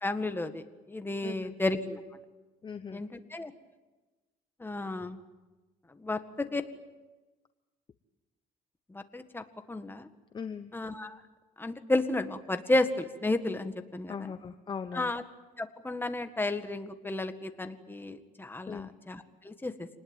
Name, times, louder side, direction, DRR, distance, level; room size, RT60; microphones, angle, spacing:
voice 1, 0.0-2.0 2.9-3.5 4.6-5.2 6.0-6.6 8.9-10.1 10.7-11.2 11.6-14.1 14.9-15.2 15.6-19.9, left 2 dB, 10° left, 8 dB, 1.8 m, -32 dB
voice 2, 1.2-1.6 2.6-3.0 10.3-10.7 14.1-15.1 18.7-18.9, left 6 dB, 30° left, 10 dB, 0.9 m, -39 dB
26.5 x 20.0 x 9.2 m, 1.2 s
cardioid pair, 110°, 17 cm